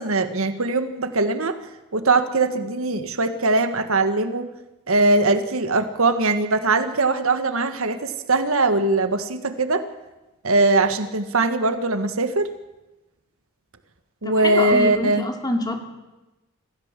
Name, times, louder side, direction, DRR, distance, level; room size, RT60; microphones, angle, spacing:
voice 1, 0.0-1.6 1.9-4.5 4.9-9.8 10.4-12.5 14.2-15.3, right 2 dB, 70° right, 9 dB, 1.5 m, -21 dB
voice 2, 14.2-15.8, left 1 dB, 20° left, 4 dB, 2.6 m, -26 dB
26.0 x 14.5 x 7.5 m, 1.0 s
head